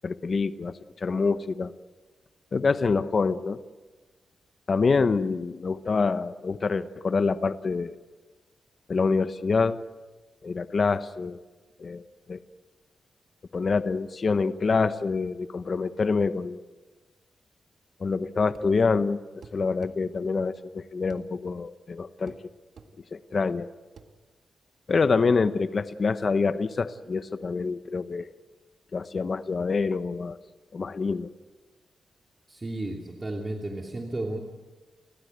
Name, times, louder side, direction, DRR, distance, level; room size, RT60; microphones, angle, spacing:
voice 1, 0.0-1.7 2.5-3.6 4.7-8.0 8.9-9.8 10.4-11.4 11.8-12.4 13.5-16.6 18.0-19.2 19.5-22.3 23.1-23.7 24.9-28.3 28.9-30.4 30.7-31.3, left 4 dB, 45° left, 12 dB, 1.0 m, -26 dB
sound 1, 18.5-18.8 19.4-20.0 21.1-21.3 22.3-22.5 22.8-22.9 24.0-24.1, right 5 dB, 65° right, 1.9 m, -48 dB
voice 2, 32.5-34.4, right 2 dB, 25° right, 0 dB, 2.8 m, -33 dB
30.0 x 15.5 x 8.1 m, 1.2 s
cardioid pair, 95°, 0 cm